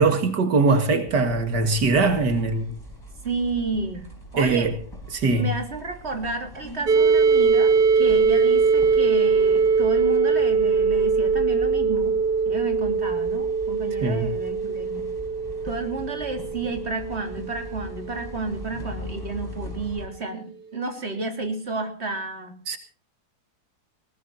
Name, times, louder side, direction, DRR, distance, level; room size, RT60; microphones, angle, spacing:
voice 1, 0.0-2.7 4.4-4.7 5.1-5.5 14.0-14.3 22.7-22.8, right 3 dB, 85° right, 2.5 m, -21 dB
sound 1, 1.1-20.1, left 1 dB, 15° left, 4.9 m, -41 dB
voice 2, 3.2-4.1 4.3-4.7 5.3-12.2 12.5-15.1 15.6-22.6, right 3 dB, 40° right, 3.6 m, -31 dB
sound 2, 6.9-18.6, right 5 dB, 70° right, 2.1 m, -22 dB
20.5 x 19.5 x 2.8 m
omnidirectional pair, 1.8 m